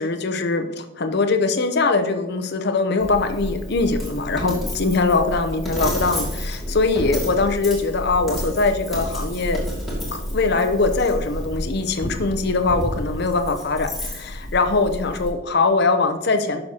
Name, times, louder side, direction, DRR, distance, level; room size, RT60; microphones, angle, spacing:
voice 1, 0.0-9.6 10.1-16.6, left 3 dB, 50° left, 7 dB, 0.7 m, -22 dB
Coin (dropping), 3.0-15.3, equal, ahead, 2.2 m, -30 dB
10.5 x 6.4 x 2.9 m, 1.0 s
head